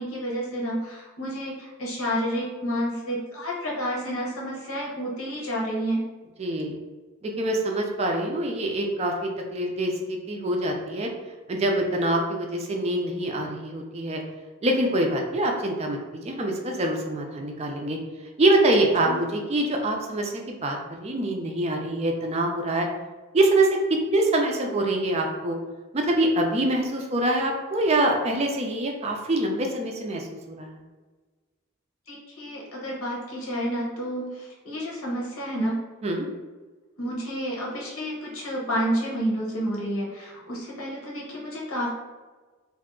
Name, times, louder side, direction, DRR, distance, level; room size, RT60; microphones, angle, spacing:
voice 1, 0.0-6.0 19.0-19.2 32.1-35.8 37.0-41.9, equal, 85° left, -3 dB, 1.0 m, -30 dB
voice 2, 6.4-6.8 7.2-11.1 11.5-14.2 14.6-16.0 16.2-18.0 18.4-22.9 23.3-23.8 24.1-25.6 25.9-30.8 36.0-36.3, right 1 dB, 30° right, 2 dB, 0.4 m, -25 dB
2.6 x 2.3 x 3.6 m, 1.3 s
head